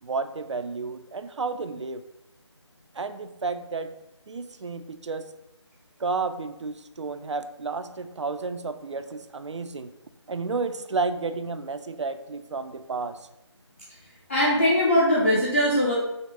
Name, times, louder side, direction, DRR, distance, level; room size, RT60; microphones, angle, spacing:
voice 1, 0.0-2.0 2.9-3.9 4.3-5.3 6.0-9.9 10.3-13.2, right 4 dB, 70° right, 10 dB, 0.4 m, -31 dB
voice 2, 14.3-15.9, equal, 25° left, -6 dB, 0.5 m, -21 dB
5.3 x 2.0 x 3.5 m, 0.89 s
figure-of-eight pair, 160°, 15 cm